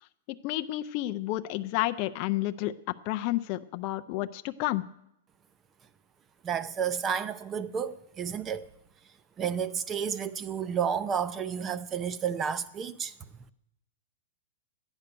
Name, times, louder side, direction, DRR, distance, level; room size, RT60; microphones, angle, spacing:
voice 1, 0.3-2.7 3.1-4.8, left 16 dB, 35° left, 0.4 m, -30 dB
voice 2, 6.4-8.7 9.4-13.1, right 7 dB, 20° right, 0.5 m, -31 dB
13.5 x 9.8 x 6.8 m
supercardioid pair, 160°, 0 cm